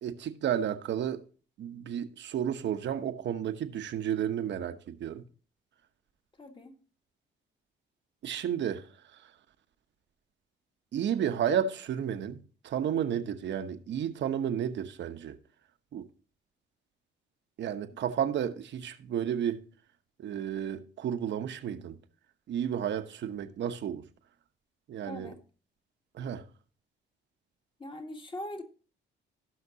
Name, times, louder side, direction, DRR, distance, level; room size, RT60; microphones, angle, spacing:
voice 1, 0.0-1.2 1.6-5.2 8.2-8.8 10.9-12.4 12.6-15.4 15.9-16.1 17.6-19.6 20.2-22.0 22.5-24.0 24.9-25.3 26.1-26.4, right 9 dB, 65° right, 1.0 m, -32 dB
voice 2, 6.4-6.8 17.9-18.1 25.0-25.4 27.8-28.6, left 1 dB, 25° left, 1.6 m, -41 dB
17.0 x 5.8 x 2.8 m
cardioid pair, 90°, 20 cm